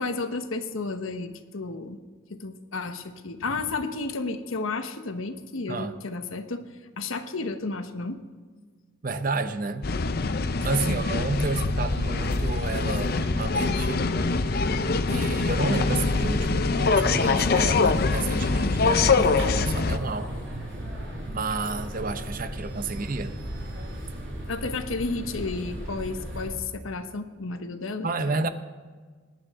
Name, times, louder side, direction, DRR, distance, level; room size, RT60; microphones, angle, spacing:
voice 1, 0.0-2.0 2.3-6.6 7.0-8.2 10.9-11.0 24.5-28.5, left 3 dB, 90° left, 8 dB, 1.0 m, -32 dB
voice 2, 9.0-9.9 10.6-14.0 15.1-20.4 21.3-23.3 28.0-28.5, right 3 dB, 45° right, 10 dB, 0.7 m, -30 dB
metro announcement los heroes, 9.8-20.0, left 4 dB, 50° left, 0.5 m, -24 dB
sound 1, 10.6-26.5, equal, 65° right, 5.1 m, -37 dB
21.0 x 10.5 x 3.7 m, 1.5 s
head